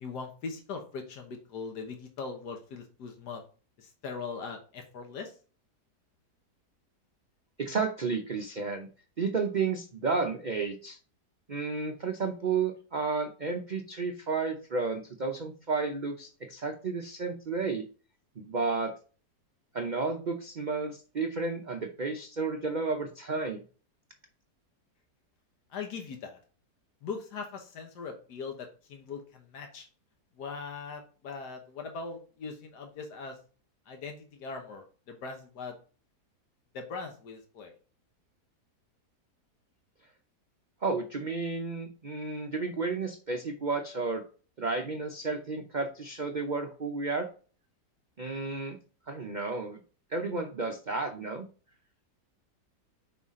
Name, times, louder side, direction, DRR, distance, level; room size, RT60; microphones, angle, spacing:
voice 1, 0.0-3.4 3.8-5.3 25.7-26.4 27.0-29.9 30.4-33.4 33.9-35.8 36.7-37.7, left 5 dB, 75° left, 3 dB, 1.7 m, -40 dB
voice 2, 7.6-8.9 9.2-11.0 11.5-17.8 18.4-18.9 19.7-23.6 40.8-44.2 44.6-47.3 48.2-48.8 49.1-49.8 50.1-51.5, right 4 dB, 75° right, 3 dB, 0.4 m, -32 dB
5.6 x 4.8 x 3.6 m, 0.39 s
omnidirectional pair, 1.8 m